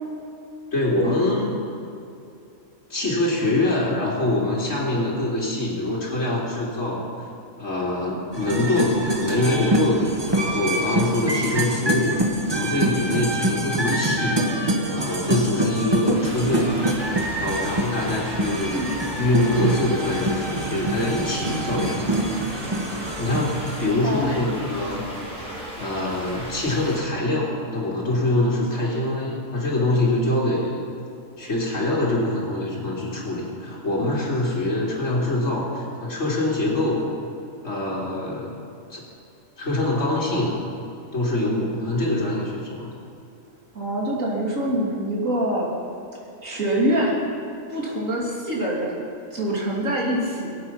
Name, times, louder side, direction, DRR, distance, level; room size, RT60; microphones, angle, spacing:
voice 1, 0.7-1.6 2.9-7.0 7.6-12.2 12.5-14.4 14.9-16.7 17.4-22.2 23.2-25.0 25.8-30.8 31.4-37.0 37.6-38.6 38.9-39.0 39.6-40.6 41.1-42.9, left 2 dB, 60° left, -7 dB, 3.4 m, -24 dB
sound 1, 8.3-23.9, right 1 dB, 20° right, 1.2 m, -25 dB
sound 2, 16.1-27.0, equal, 5° left, 4.0 m, -36 dB
voice 2, 24.0-24.6 24.9-25.1 43.7-45.7 46.4-47.2 47.7-49.0 49.3-50.5, right 1 dB, 70° right, -4 dB, 3.3 m, -25 dB
23.5 x 9.0 x 5.7 m, 2.7 s
omnidirectional pair, 1.4 m